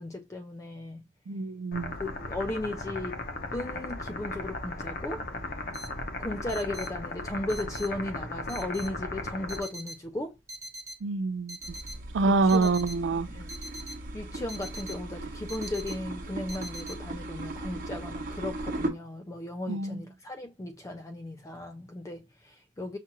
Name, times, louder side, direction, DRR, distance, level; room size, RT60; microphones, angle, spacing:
voice 1, 0.0-1.1 2.0-3.2 3.5-5.2 6.2-10.4 12.3-12.7 13.3-13.5 14.1-23.0, left 1 dB, 15° left, 0.3 m, -36 dB
voice 2, 1.3-1.9 11.0-11.6 12.1-13.3 19.7-20.0, right 3 dB, 70° right, 0.4 m, -26 dB
sound 1, 1.7-9.6, left 2 dB, 55° left, 0.8 m, -36 dB
sound 2, 5.7-16.9, equal, 20° right, 0.9 m, -44 dB
sound 3, 11.6-18.9, right 2 dB, 50° right, 0.9 m, -38 dB
5.7 x 2.4 x 2.9 m
head